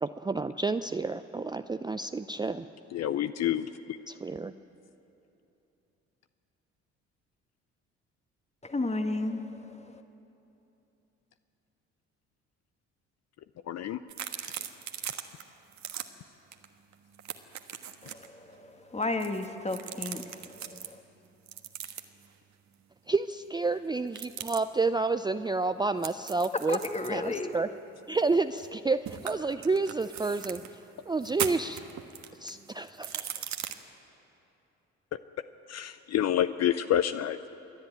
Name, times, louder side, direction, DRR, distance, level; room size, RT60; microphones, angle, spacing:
voice 1, 0.0-2.7 4.1-4.5 23.1-26.8 27.1-27.7 28.1-31.8 32.4-33.4, right 3 dB, 15° right, 0.5 m, -30 dB
voice 2, 2.9-4.0 13.7-14.0 35.7-37.5, left 11 dB, 50° left, 0.6 m, -28 dB
voice 3, 8.6-10.0 18.0-21.0 26.7-27.5, left 2 dB, 20° left, 1.6 m, -33 dB
sound 1, 14.1-15.4 15.7-16.1 16.5-16.7 16.9-18.3 19.0-20.9 21.5-22.3 24.1-24.6 26.0-28.8 29.1-30.7 31.2-33.7, right 9 dB, 55° right, 1.3 m, -39 dB
27.5 x 10.5 x 9.2 m
hypercardioid pair, 60°, 33 cm